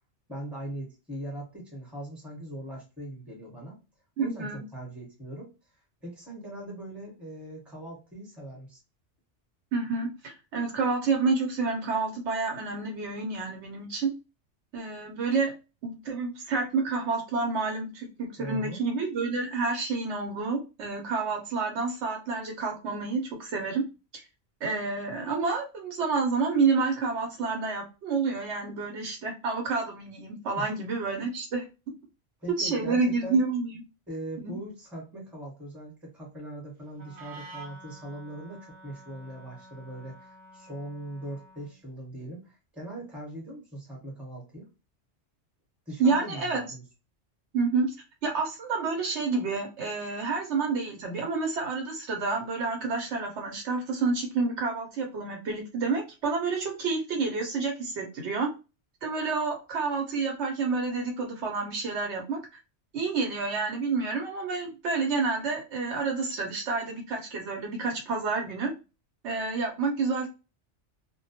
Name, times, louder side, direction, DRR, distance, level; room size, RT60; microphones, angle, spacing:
voice 1, 0.3-3.8 4.2-5.5 6.0-8.8 18.4-18.8 30.5-30.7 32.4-33.4 34.1-44.7 45.9-46.8, right 1 dB, ahead, -2 dB, 0.8 m, -40 dB
voice 2, 4.2-4.6 9.7-14.1 14.7-15.5 15.8-23.8 24.6-31.6 32.6-33.7 34.4-34.5 46.0-46.6 47.5-47.9 48.2-58.5 59.0-62.4 62.9-68.7 69.2-70.3, right 4 dB, 75° right, 2 dB, 0.9 m, -29 dB
Wind instrument woodwind instrument, 36.9-41.8, right 2 dB, 45° right, 0.6 m, -49 dB
2.1 x 2.1 x 2.7 m, 0.29 s
omnidirectional pair, 1.2 m